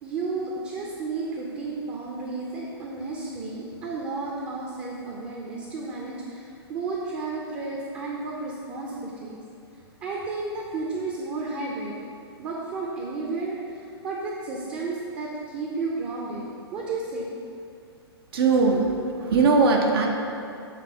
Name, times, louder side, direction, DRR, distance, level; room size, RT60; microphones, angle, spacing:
voice 1, 0.0-9.4 10.0-11.9 12.4-16.5 16.7-17.3 18.6-18.9, right 3 dB, 30° right, -2 dB, 0.8 m, -32 dB
voice 2, 18.3-18.8 19.3-20.1, right 4 dB, 65° right, 1 dB, 0.9 m, -19 dB
7.8 x 3.4 x 4.6 m, 2.5 s
hypercardioid pair, 120°, 14 cm